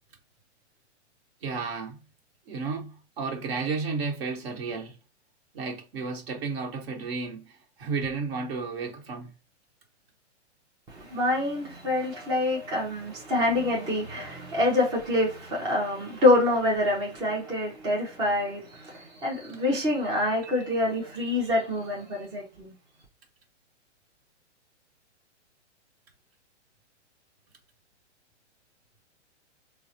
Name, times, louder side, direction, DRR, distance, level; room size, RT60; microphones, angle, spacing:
voice 1, 1.4-2.0 2.5-4.9 5.5-9.3, right 4 dB, 55° right, 1.2 m, -32 dB
voice 2, 10.9-22.7, left 1 dB, 10° right, 0.4 m, -26 dB
3.8 x 2.1 x 2.7 m
hypercardioid pair, 135°, 36 cm